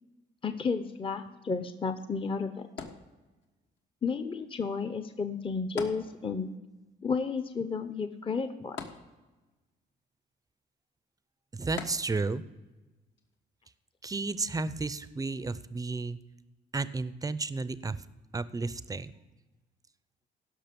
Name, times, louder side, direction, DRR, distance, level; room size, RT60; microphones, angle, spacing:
voice 1, 0.4-2.7 4.0-6.5 7.0-8.8, left 5 dB, 25° left, 9 dB, 0.7 m, -32 dB
sound 1, 2.8-3.7 5.8-6.6 6.9-7.0 8.8-9.6 11.8-12.5 13.2-13.3, left 5 dB, 70° left, 1.5 m, -42 dB
voice 2, 11.5-12.4 14.0-16.2 16.7-18.0 18.3-19.1, right 3 dB, 15° right, 15 dB, 0.6 m, -32 dB
16.5 x 6.1 x 5.3 m, 1.2 s
cardioid pair, 90°, 20 cm